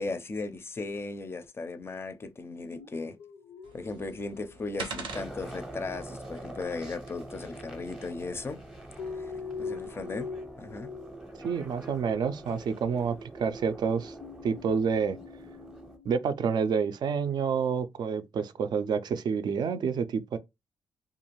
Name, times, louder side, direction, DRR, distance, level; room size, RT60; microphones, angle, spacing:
voice 1, 0.0-3.2 3.7-8.6 9.2-9.3 9.6-10.3 10.6-10.9, left 3 dB, 30° left, 0.4 m, -37 dB
sound 1, 2.5-4.8 5.0-5.7 9.0-11.9 12.1-12.3 13.9-16.7, left 5 dB, 90° left, 0.5 m, -43 dB
sound 2, 3.6-9.1, right 4 dB, 90° right, 0.7 m, -45 dB
sound 3, 5.1-16.0, right 2 dB, 5° right, 0.7 m, -45 dB
voice 2, 11.4-14.1 14.4-15.2 16.1-20.4, right 6 dB, 60° right, 0.4 m, -28 dB
2.5 x 2.3 x 3.0 m
cardioid pair, 95°, 8 cm